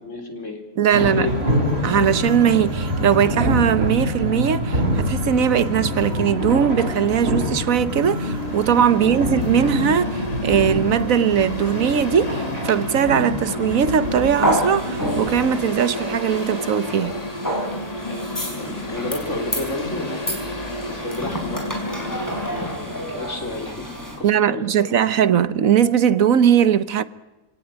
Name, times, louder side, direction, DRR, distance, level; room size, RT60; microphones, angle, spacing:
voice 1, 0.0-0.6 1.0-1.4 8.9-9.2 18.0-20.4 20.9-22.2 22.5-25.1, left 2 dB, 65° left, 4.3 m, -32 dB
voice 2, 0.8-1.3 1.8-17.1 24.2-27.0, right 8 dB, 80° right, 1.4 m, -19 dB
sound 1, 0.9-15.6, equal, 50° right, 4.4 m, -26 dB
Mechanical fan, 8.2-23.0, left 1 dB, 30° left, 2.1 m, -31 dB
sound 2, 14.4-24.2, equal, 15° left, 5.5 m, -30 dB
25.5 x 18.0 x 9.0 m
omnidirectional pair, 1.4 m